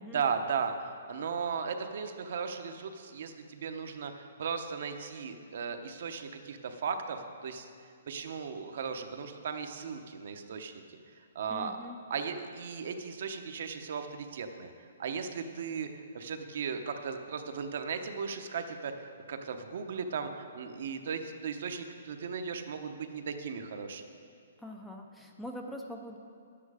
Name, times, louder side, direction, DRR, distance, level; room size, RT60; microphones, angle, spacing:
voice 1, 0.1-7.7 8.1-10.8 11.3-11.8 12.1-18.9 19.3-24.0, right 6 dB, 55° right, 7 dB, 0.8 m, -36 dB
voice 2, 11.5-12.0 24.6-26.2, left 1 dB, 5° left, 2 dB, 0.4 m, -43 dB
10.5 x 8.7 x 4.9 m, 2.3 s
hypercardioid pair, 170°, 0 cm